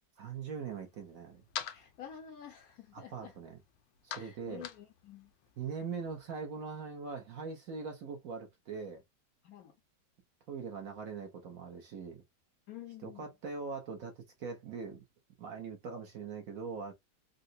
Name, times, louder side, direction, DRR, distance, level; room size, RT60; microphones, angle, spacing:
voice 1, 0.2-1.4 2.9-3.6 4.0-4.7 5.6-9.0 10.5-12.2 13.0-14.1 14.4-15.0 15.4-16.9, right 5 dB, 60° right, 1.0 m, -41 dB
sound 1, 0.6-6.3, left 10 dB, 90° left, 1.3 m, -48 dB
voice 2, 1.7-3.3 4.1-5.3 9.4-9.7 12.7-13.3, left 9 dB, 70° left, 0.9 m, -49 dB
3.8 x 2.1 x 2.6 m
omnidirectional pair, 2.0 m